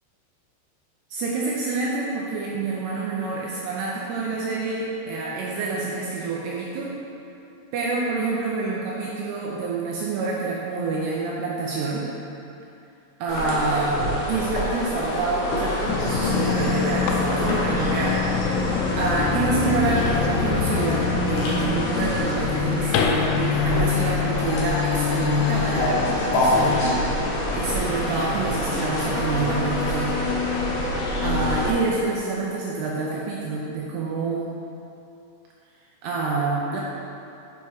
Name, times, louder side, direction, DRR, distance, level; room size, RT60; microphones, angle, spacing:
voice 1, 1.1-6.9 7.7-12.1 13.2-14.0 14.3-27.0 27.5-30.2 31.2-34.6 36.0-36.8, right 3 dB, 80° right, -4 dB, 2.5 m, -27 dB
sound 1, 13.3-31.7, equal, 70° left, 2.1 m, -27 dB
sound 2, 15.9-31.7, left 6 dB, 90° left, 2.4 m, -26 dB
7.0 x 5.5 x 4.7 m, 2.7 s
omnidirectional pair, 5.4 m